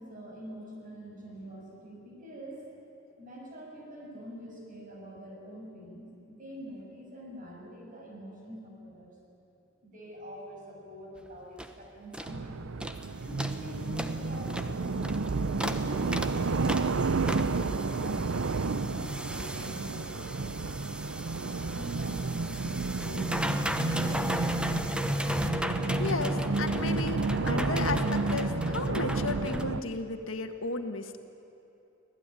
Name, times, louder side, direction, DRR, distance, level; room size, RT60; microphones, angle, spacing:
voice 1, 0.0-2.6 3.2-9.1 9.8-16.5 17.2-20.6 21.7-25.0, equal, 45° right, -2 dB, 6.8 m, -45 dB
sound 1, 11.2-11.3 11.6-11.8 12.1-12.4 12.8-13.1 13.4-29.7, equal, 5° right, 1.0 m, -35 dB
sound 2, 12.3-29.8, right 3 dB, 80° right, 0.6 m, -31 dB
voice 2, 26.0-31.2, left 3 dB, 85° left, 6 dB, 1.6 m, -34 dB
25.0 x 17.5 x 9.9 m, 2.8 s
head